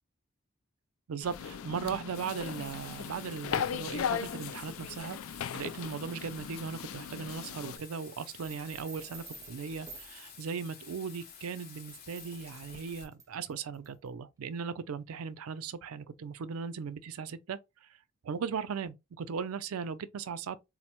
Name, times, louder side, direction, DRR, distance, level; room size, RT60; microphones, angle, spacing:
voice 1, 1.1-5.2 5.5-17.6 18.2-20.6, right 6 dB, 90° right, 0.4 m, -38 dB
sound 1, 1.2-7.8, left 8 dB, 80° left, 0.3 m, -37 dB
Bathtub (filling or washing), 2.1-13.0, left 6 dB, 45° left, 0.7 m, -51 dB
sound 2, 8.4-10.2 11.4-14.1, right 4 dB, 15° right, 0.5 m, -51 dB
4.0 x 2.1 x 2.9 m
head